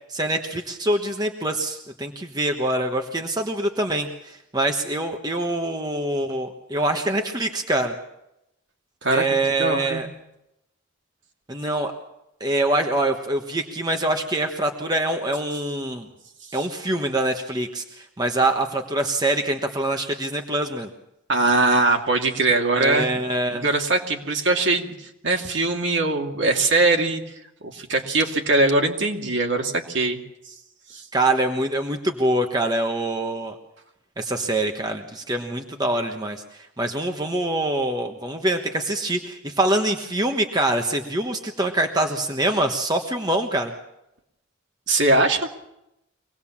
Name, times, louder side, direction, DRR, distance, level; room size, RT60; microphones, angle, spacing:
voice 1, 0.1-7.9 9.1-10.1 11.5-11.9 12.4-16.1 16.5-20.9 22.7-23.6 31.1-33.5 34.2-43.7, right 1 dB, 20° right, 4 dB, 1.2 m, -24 dB
voice 2, 9.6-10.0 21.3-23.2 23.5-27.2 27.6-30.2 30.9-31.0 44.9-45.5, right 2 dB, 55° right, 2 dB, 2.6 m, -21 dB
24.5 x 19.0 x 7.3 m, 0.87 s
head